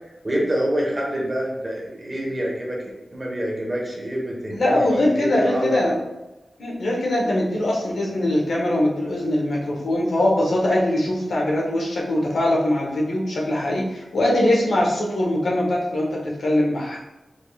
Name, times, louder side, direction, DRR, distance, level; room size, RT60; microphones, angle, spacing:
voice 1, 0.2-2.8 3.1-5.8, equal, 25° right, -3 dB, 1.3 m, -26 dB
voice 2, 4.5-6.0 6.6-17.0, left 1 dB, 85° left, -3 dB, 1.1 m, -22 dB
5.2 x 3.5 x 2.4 m, 1.0 s
wide cardioid pair, 110°, 0 cm